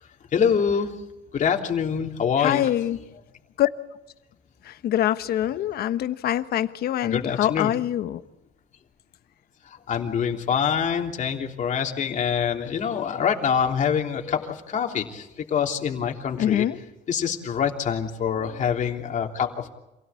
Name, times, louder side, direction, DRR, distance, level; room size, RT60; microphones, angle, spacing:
voice 1, 0.3-0.9 1.3-2.7 7.0-7.7 9.6-16.6 17.1-19.7, left 7 dB, 45° left, 2 dB, 3.2 m, -25 dB
voice 2, 2.4-3.0 3.6-3.7 4.6-8.2 16.4-16.8, left 12 dB, 65° left, 12 dB, 1.2 m, -24 dB
27.5 x 17.5 x 8.5 m, 0.96 s
cardioid pair, 110°, 17 cm